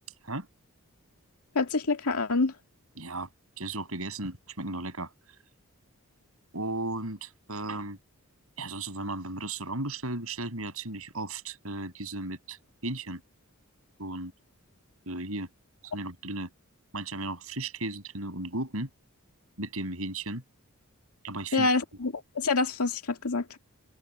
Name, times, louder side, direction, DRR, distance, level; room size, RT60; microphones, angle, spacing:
voice 1, 1.5-2.5 21.5-23.6, left 3 dB, 85° left, 2.2 m, -27 dB
voice 2, 3.0-3.3 3.6-5.4 6.5-8.0 8.6-13.2 14.0-14.3 15.0-15.5 15.8-16.5 16.9-18.9 19.6-20.4 21.2-21.7, right 2 dB, 75° right, 6.8 m, -35 dB
head